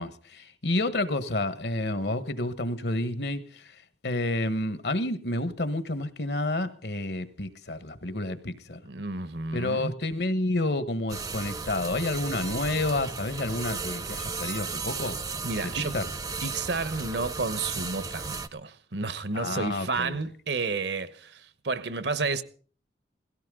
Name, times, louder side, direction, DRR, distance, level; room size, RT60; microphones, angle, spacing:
voice 1, 0.0-3.7 4.0-8.8 9.5-15.2 15.6-16.0 19.3-20.2, left 2 dB, 70° left, 1.3 m, -30 dB
voice 2, 8.8-9.9 15.4-15.9 16.4-22.4, right 3 dB, 70° right, 1.1 m, -31 dB
sound 1, 11.1-18.5, right 4 dB, 20° right, 0.6 m, -35 dB
18.0 x 16.0 x 3.8 m
head